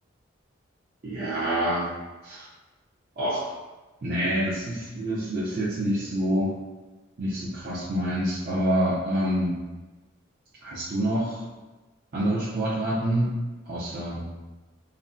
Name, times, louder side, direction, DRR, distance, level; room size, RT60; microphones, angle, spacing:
voice 1, 1.0-1.9 2.2-2.5 3.2-3.5 4.0-6.5 7.2-9.6 10.6-11.4 12.1-13.3 13.7-14.2, equal, 45° right, -10 dB, 0.5 m, -27 dB
2.4 x 2.1 x 2.5 m, 1.2 s
head